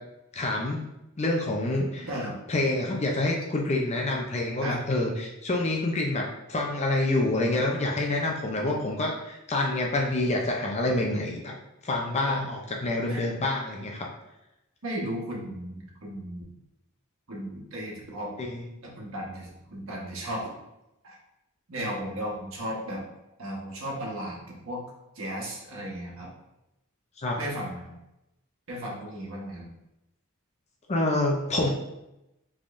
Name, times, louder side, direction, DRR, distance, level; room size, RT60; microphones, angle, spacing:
voice 1, 0.3-0.9 1.2-2.1 2.5-11.5 11.8-14.1 18.4-18.7 27.2-27.4 30.9-31.7, left 2 dB, 35° left, -1 dB, 0.6 m, -27 dB
voice 2, 2.0-2.3 4.6-4.8 12.2-12.5 13.1-13.2 14.8-16.5 17.3-18.3 18.8-20.5 21.0-21.2 21.7-23.0 23.4-24.8 25.1-26.3 27.4-27.9 28.7-29.7, equal, 70° right, -3 dB, 1.4 m, -35 dB
5.2 x 3.6 x 2.6 m, 0.90 s
head